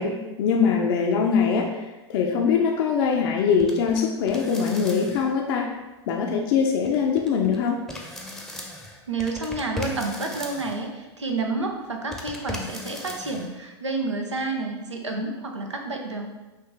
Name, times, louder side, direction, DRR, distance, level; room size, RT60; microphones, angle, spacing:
voice 1, 0.0-5.7 6.1-7.8, left 6 dB, 55° left, 0 dB, 0.6 m, -23 dB
sound 1, 3.6-4.0 4.3-5.3 6.8-7.6 7.9-10.9 12.1-13.5, left 1 dB, ahead, 0.7 m, -38 dB
voice 2, 9.1-16.3, right 3 dB, 90° right, 2 dB, 0.7 m, -29 dB
5.7 x 2.7 x 3.4 m, 1.1 s
hypercardioid pair, 95°, 15 cm